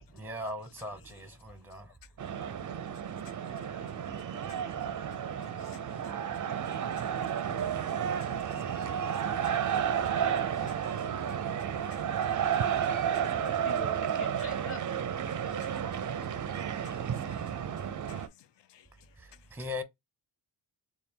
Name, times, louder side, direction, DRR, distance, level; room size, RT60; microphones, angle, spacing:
voice 1, 0.1-2.0 19.2-19.8, left 2 dB, 5° right, 0.7 m, -39 dB
sound 1, 2.2-18.3, right 8 dB, 40° right, 0.5 m, -32 dB
voice 2, 3.3-12.5 13.4-14.9, left 1 dB, 25° left, 1.6 m, -51 dB
voice 3, 10.6-11.6 11.9-13.3 15.5-15.6 16.8-18.3 18.7-18.9, left 11 dB, 65° left, 0.6 m, -58 dB
3.4 x 2.3 x 4.2 m
cardioid pair, 70°, 47 cm